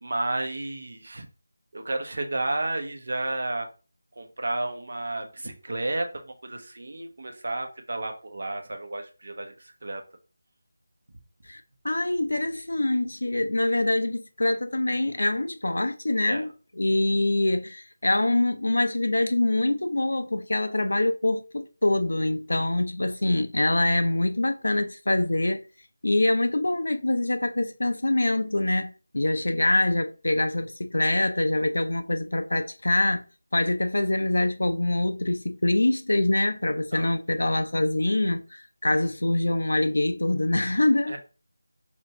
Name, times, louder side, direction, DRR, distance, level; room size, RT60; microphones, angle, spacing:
voice 1, 0.0-1.3 1.7-3.7 4.2-10.0 16.3-16.5 36.9-37.1 41.1-41.2, right 2 dB, 60° right, 0.7 m, -32 dB
voice 2, 11.5-16.5 16.8-25.6 26.0-33.2 33.5-41.1, left 2 dB, 75° left, 0.4 m, -24 dB
4.3 x 2.5 x 2.8 m
figure-of-eight pair, 170°, 0 cm